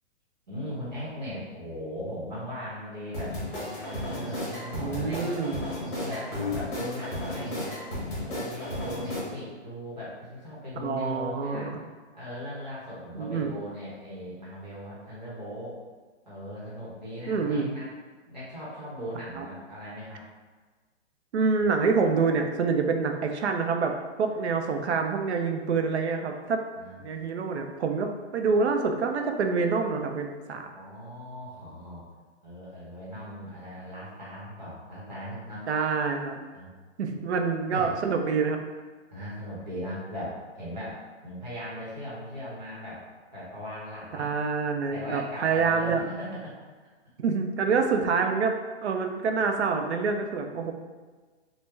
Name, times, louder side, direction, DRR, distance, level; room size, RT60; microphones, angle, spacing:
voice 1, 0.5-5.5 6.0-7.8 8.2-11.8 12.1-15.8 16.3-17.9 18.3-20.3 26.7-27.0 30.7-32.0 32.4-35.6 36.5-36.7 37.1-37.9 39.1-43.0 43.3-44.3 44.9-46.6, left 1 dB, 35° right, -8 dB, 0.8 m, -38 dB
sound 1, 3.1-9.2, left 1 dB, 45° left, 1.4 m, -33 dB
voice 2, 4.7-5.7 10.8-11.7 13.1-13.5 17.3-17.8 19.4-19.5 21.3-23.9 24.2-26.6 27.0-30.7 35.7-36.4 37.0-38.6 44.1-46.1 47.2-48.5 48.8-50.7, right 5 dB, 65° right, 4 dB, 0.5 m, -26 dB
3.3 x 2.0 x 3.1 m, 1.4 s
hypercardioid pair, 180°, 36 cm